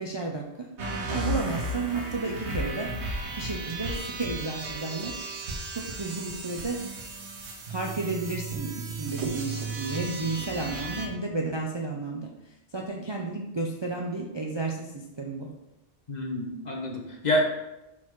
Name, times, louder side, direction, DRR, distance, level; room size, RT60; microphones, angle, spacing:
voice 1, 0.0-2.9 3.4-5.1 5.7-6.8 7.7-12.3 12.7-15.5, right 3 dB, 35° right, -1 dB, 0.5 m, -32 dB
sound 1, 0.8-11.1, right 2 dB, 75° right, 1.2 m, -34 dB
voice 2, 16.1-17.4, equal, 40° left, 0 dB, 1.1 m, -28 dB
5.8 x 4.5 x 4.6 m, 0.94 s
omnidirectional pair, 1.2 m